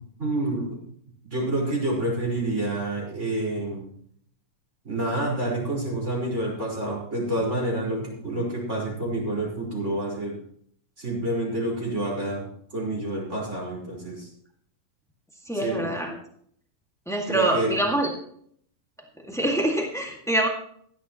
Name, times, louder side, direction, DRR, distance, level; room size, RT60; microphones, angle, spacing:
voice 1, 0.2-0.8 1.2-3.9 4.8-10.4 11.0-14.3 15.6-15.9 17.3-17.7, right 1 dB, 20° right, -3 dB, 4.9 m, -28 dB
voice 2, 15.4-16.2 17.0-18.1 19.3-20.5, right 1 dB, 5° left, 0 dB, 0.5 m, -25 dB
16.5 x 12.0 x 3.0 m, 0.64 s
omnidirectional pair, 4.1 m